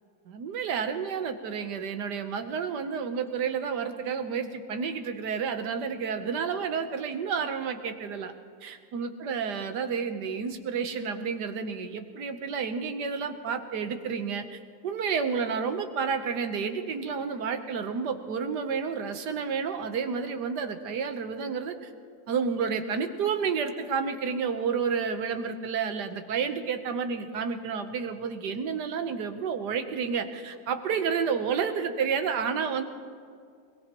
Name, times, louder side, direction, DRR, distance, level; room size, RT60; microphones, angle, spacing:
voice 1, 0.3-8.3 8.6-21.9 22.3-32.8, right 6 dB, 90° right, 8 dB, 1.6 m, -30 dB
21.5 x 21.5 x 3.0 m, 2.2 s
omnidirectional pair, 1.8 m